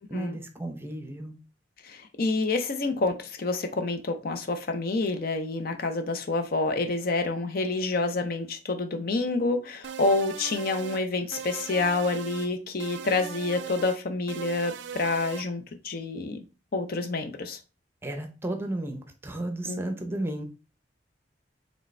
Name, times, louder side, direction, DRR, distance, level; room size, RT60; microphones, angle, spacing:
voice 1, 0.1-1.3 18.0-20.4, right 1 dB, 15° right, 5 dB, 0.7 m, -33 dB
voice 2, 1.9-16.4 16.7-17.6 19.7-19.8, left 3 dB, 55° left, 7 dB, 0.6 m, -28 dB
sound 1, 9.8-11.0 11.3-12.5 12.8-14.0 14.3-15.5, right 7 dB, 85° right, 0.4 m, -39 dB
4.9 x 3.3 x 3.2 m, 0.31 s
head